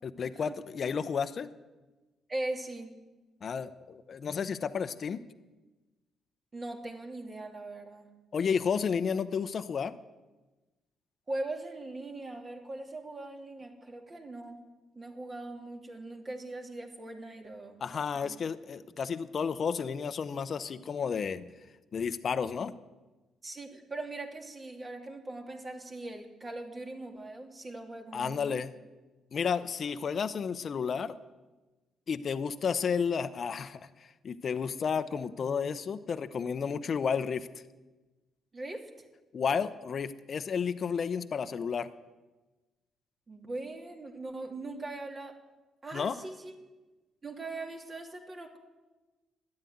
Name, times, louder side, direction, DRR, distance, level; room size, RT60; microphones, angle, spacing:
voice 1, 0.0-1.5 3.4-5.2 8.3-9.9 17.8-21.5 21.9-22.7 28.1-28.7 29.3-31.2 32.1-37.5 39.3-41.9 45.9-46.2, left 6 dB, 50° left, 10 dB, 0.7 m, -32 dB
voice 2, 2.3-2.9 6.5-8.1 11.3-14.6 14.9-17.8 18.2-18.3 23.4-28.6 38.5-38.9 43.3-45.3 45.8-46.5 47.2-48.6, right 2 dB, 30° right, 2 dB, 2.6 m, -40 dB
13.0 x 9.9 x 9.3 m, 1.2 s
cardioid pair, 90°, 0 cm